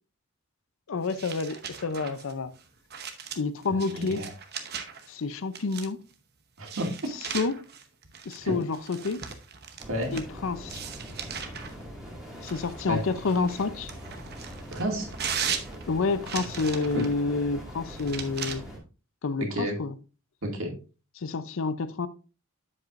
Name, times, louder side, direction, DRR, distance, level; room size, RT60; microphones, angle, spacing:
voice 1, 0.9-2.5 3.4-4.3 5.1-6.0 7.3-7.6 8.3-9.2 10.1-10.8 12.4-13.9 15.9-18.6 19.2-19.9 21.2-22.1, left 4 dB, 65° left, 0.5 m, -29 dB
sound 1, 1.0-5.1 5.5-6.1 6.6-10.3 10.7-11.7 12.4-17.2 18.0-18.6, right 7 dB, 50° right, 0.9 m, -38 dB
voice 2, 3.7-4.3 6.6-6.9 8.4-8.5 9.9-10.1 12.9-13.0 14.7-15.1 16.9-17.0 19.4-19.8 20.4-20.7, equal, 65° right, 2.2 m, -31 dB
sound 2, 9.8-18.8, equal, 5° right, 2.1 m, -42 dB
7.8 x 7.4 x 2.5 m
head